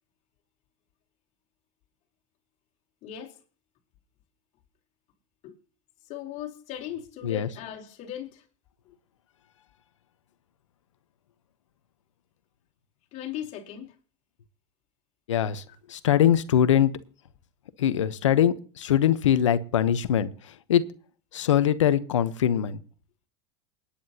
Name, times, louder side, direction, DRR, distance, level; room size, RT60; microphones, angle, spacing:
voice 1, 3.0-3.4 5.4-5.5 6.1-8.4 8.9-9.0 13.1-13.9 15.7-15.8, left 10 dB, 45° left, 4.0 m, -38 dB
voice 2, 15.3-15.6 15.9-16.9 17.8-20.3 20.7-20.8 21.3-22.8, left 10 dB, 90° left, 1.0 m, -22 dB
28.0 x 10.0 x 2.9 m
hypercardioid pair, 105°, 15 cm